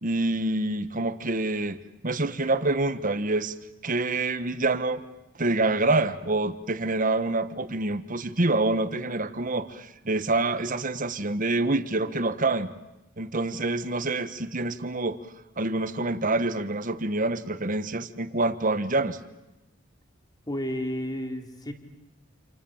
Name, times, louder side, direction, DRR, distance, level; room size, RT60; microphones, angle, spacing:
voice 1, 0.0-1.8 2.0-3.5 3.8-5.0 5.4-12.7 13.2-15.2 15.6-19.2, right 2 dB, 40° right, 11 dB, 1.4 m, -26 dB
voice 2, 20.5-21.7, equal, 20° left, 5 dB, 3.1 m, -31 dB
29.0 x 28.0 x 7.3 m, 0.98 s
head